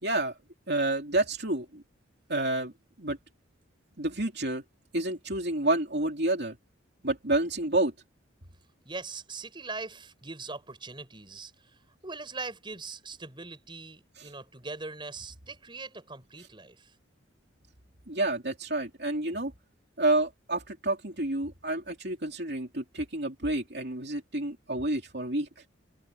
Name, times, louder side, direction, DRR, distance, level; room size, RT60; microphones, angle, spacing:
voice 1, 0.0-0.4 0.7-1.8 2.3-2.7 3.0-3.2 4.0-4.6 4.9-6.6 7.0-7.9 14.2-14.3 18.1-19.5 20.0-25.6, right 2 dB, 55° right, 3.5 m, -29 dB
voice 2, 8.8-16.9, right 3 dB, 25° right, 5.6 m, -41 dB
head